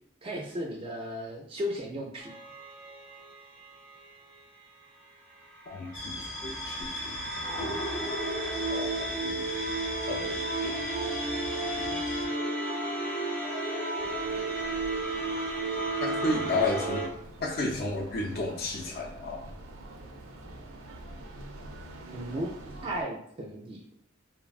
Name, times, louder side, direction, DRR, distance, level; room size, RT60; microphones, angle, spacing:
voice 1, 0.2-2.3 22.1-22.5 22.8-23.8, equal, 25° right, -1 dB, 0.3 m, -35 dB
sound 1, 2.2-4.1 5.5-17.1, right 2 dB, 5° left, 0.6 m, -33 dB
voice 2, 5.7-8.1 8.7-9.5 10.1-10.7 11.7-12.0 16.0-17.1 17.4-19.5, left 2 dB, 50° left, 2 dB, 0.5 m, -33 dB
sound 2, 5.9-12.3, left 1 dB, 90° left, 0.7 m, -38 dB
sound 3, 14.0-23.0, right 1 dB, 90° right, 0.5 m, -46 dB
3.3 x 2.1 x 2.3 m, 0.70 s
head